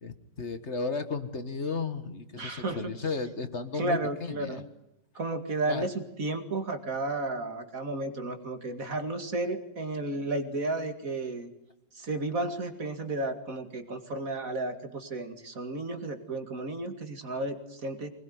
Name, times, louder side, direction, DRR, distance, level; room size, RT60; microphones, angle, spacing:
voice 1, 0.0-4.6 5.7-5.9, left 4 dB, 40° left, 10 dB, 1.7 m, -34 dB
voice 2, 2.4-2.9 3.7-4.6 5.1-11.5 11.9-18.1, right 2 dB, 45° right, 7 dB, 2.6 m, -33 dB
25.0 x 21.0 x 9.5 m, 0.82 s
omnidirectional pair, 2.1 m